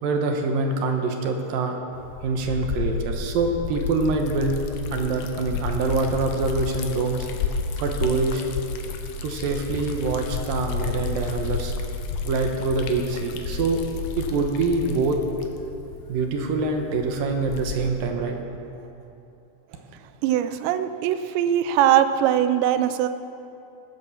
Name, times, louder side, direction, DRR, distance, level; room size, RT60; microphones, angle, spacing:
voice 1, 0.0-1.8 2.2-4.6 4.9-7.3 7.8-8.4 9.2-11.7 12.2-13.8 14.2-15.2 16.1-18.4, right 3 dB, 70° right, 3 dB, 2.4 m, -25 dB
Liquid, 1.9-18.0, left 5 dB, 75° left, 2.9 m, -31 dB
voice 2, 20.2-23.1, right 10 dB, 85° right, 10 dB, 2.9 m, -21 dB
18.0 x 9.7 x 7.2 m, 2.8 s
omnidirectional pair, 5.0 m